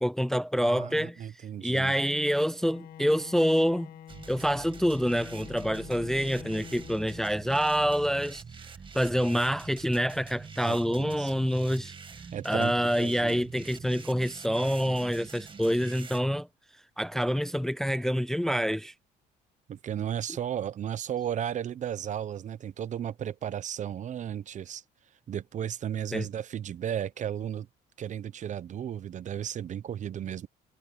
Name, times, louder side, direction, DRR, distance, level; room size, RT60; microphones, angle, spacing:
voice 1, 0.0-1.3 1.6-3.9 4.3-8.4 8.9-11.9 12.4-16.5 17.0-18.9 26.1-26.3, equal, ahead, 0.5 m, -27 dB
voice 2, 0.6-2.0 10.6-11.3 12.3-13.4 19.7-24.8 25.3-27.7 28.0-30.5, right 9 dB, 45° right, 0.8 m, -34 dB
Bowed string instrument, 2.5-7.8, left 10 dB, 60° left, 1.3 m, -47 dB
sound 1, 4.1-16.2, right 5 dB, 30° right, 2.1 m, -45 dB
cardioid pair, 110°, 17 cm